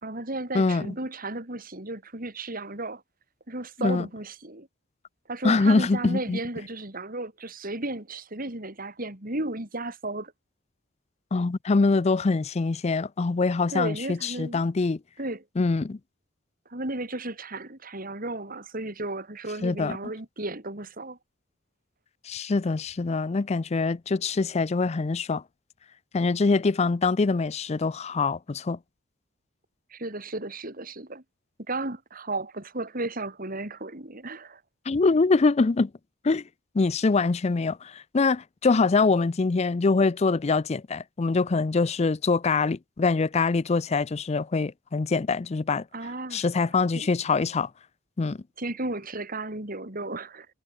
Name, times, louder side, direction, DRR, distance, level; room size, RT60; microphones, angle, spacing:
voice 1, 0.0-3.0 3.5-4.7 5.3-10.3 13.7-14.6 15.2-15.4 16.7-21.2 29.9-31.2 31.7-34.6 45.9-47.1 48.6-50.5, right 2 dB, 45° right, 3.7 m, -34 dB
voice 2, 0.5-0.9 3.8-4.0 5.4-6.4 11.3-15.0 15.6-16.0 19.6-20.0 22.3-25.4 26.1-28.8 34.9-35.9 36.2-36.4 36.7-45.8 46.3-47.7 48.2-48.4, left 4 dB, 30° left, 0.4 m, -24 dB
head